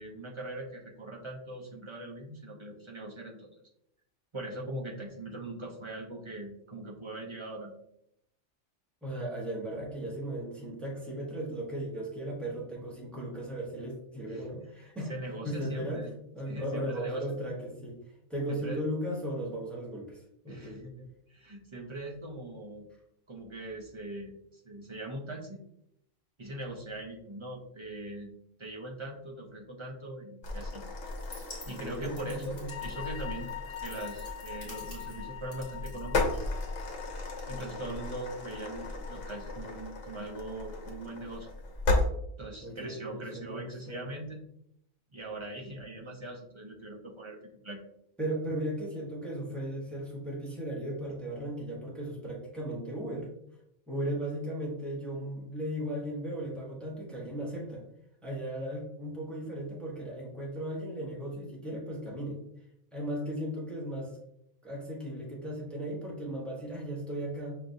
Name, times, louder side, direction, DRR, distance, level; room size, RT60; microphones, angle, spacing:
voice 1, 0.0-3.5 4.3-7.7 14.3-14.4 15.1-16.1 16.4-17.2 18.5-18.8 20.5-22.9 23.3-25.6 26.4-28.3 28.6-30.8 31.7-33.5 33.8-36.4 37.5-41.5 42.4-44.4 45.1-47.8, right 1 dB, 35° right, -2 dB, 0.5 m, -41 dB
voice 2, 9.0-15.1 15.4-16.0 16.3-18.0 18.3-20.8 31.7-32.7 42.6-44.0 48.2-53.3 53.9-57.8 58.2-62.4 62.9-64.2 64.6-67.6, right 1 dB, ahead, -4 dB, 0.9 m, -36 dB
sound 1, 30.4-42.1, left 2 dB, 90° left, 1.2 m, -35 dB
sound 2, 31.0-36.8, left 2 dB, 30° left, 1.0 m, -51 dB
sound 3, 32.7-39.5, left 10 dB, 60° left, 0.8 m, -45 dB
6.1 x 2.5 x 2.6 m, 0.76 s
omnidirectional pair, 1.3 m